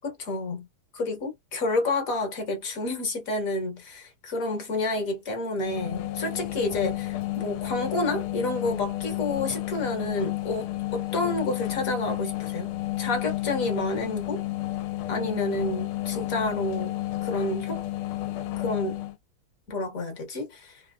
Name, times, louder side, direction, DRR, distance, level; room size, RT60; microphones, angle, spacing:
voice 1, 0.0-0.7 0.9-14.4 15.1-17.8 18.6-19.0 19.7-20.8, left 2 dB, 45° left, 1.3 m, -30 dB
sound 1, 5.6-19.2, left 16 dB, 85° left, 1.5 m, -31 dB
3.6 x 2.7 x 2.3 m
omnidirectional pair, 2.3 m